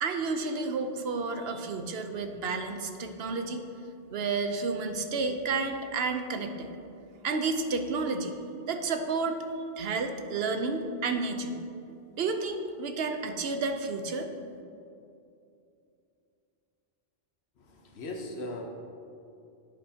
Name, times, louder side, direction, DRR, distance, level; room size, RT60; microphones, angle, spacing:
voice 1, 0.0-3.6 4.1-6.7 7.2-8.4 8.7-9.4 9.8-11.6 12.2-14.3, right 4 dB, 70° right, 6 dB, 0.9 m, -31 dB
voice 2, 17.6-18.6, left 2 dB, 85° left, 1 dB, 1.2 m, -38 dB
10.5 x 9.3 x 2.8 m, 2.6 s
omnidirectional pair, 1.1 m